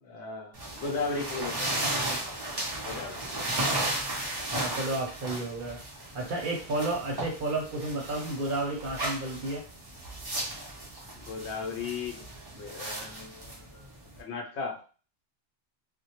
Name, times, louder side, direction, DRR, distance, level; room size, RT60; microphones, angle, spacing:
voice 1, 0.0-2.0 2.3-2.4 2.8-3.2 11.1-12.2 12.5-13.9 14.2-14.8, left 4 dB, 75° left, 1 dB, 0.9 m, -36 dB
sound 1, 0.5-14.2, right 1 dB, 35° right, 0.4 m, -35 dB
voice 2, 4.6-5.8 6.1-9.6, right 2 dB, 55° right, 0 dB, 0.7 m, -32 dB
2.1 x 2.1 x 2.8 m, 0.38 s
omnidirectional pair, 1.2 m